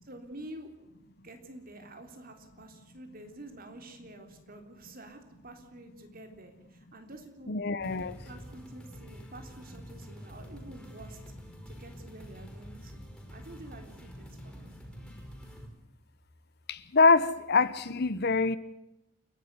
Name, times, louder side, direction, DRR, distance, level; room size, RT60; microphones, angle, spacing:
voice 1, 0.0-0.7 1.0-7.6 7.9-8.0 8.2-11.2 11.7-13.0 13.3-14.7, right 1 dB, 50° right, 3.6 m, -48 dB
voice 2, 7.5-8.1 16.7-18.6, left 4 dB, 55° left, 1.0 m, -25 dB
sound 1, 7.8-15.7, equal, 5° left, 5.5 m, -47 dB
29.0 x 11.5 x 9.6 m
head